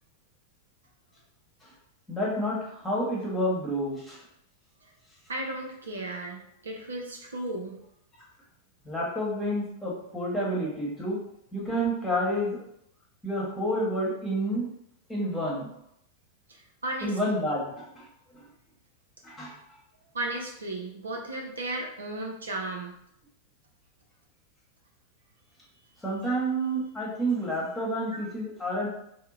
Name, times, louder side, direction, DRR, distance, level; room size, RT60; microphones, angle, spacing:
voice 1, 2.1-4.2 8.8-11.2 11.5-12.6 13.2-14.7 15.1-15.7 17.0-18.0 19.2-19.6 26.0-28.9, equal, 10° left, -5 dB, 1.1 m, -29 dB
voice 2, 5.3-7.8 16.5-17.2 20.1-23.0, right 2 dB, 70° right, 0 dB, 0.5 m, -35 dB
2.8 x 2.1 x 3.7 m, 0.75 s
figure-of-eight pair, 90°, 0 cm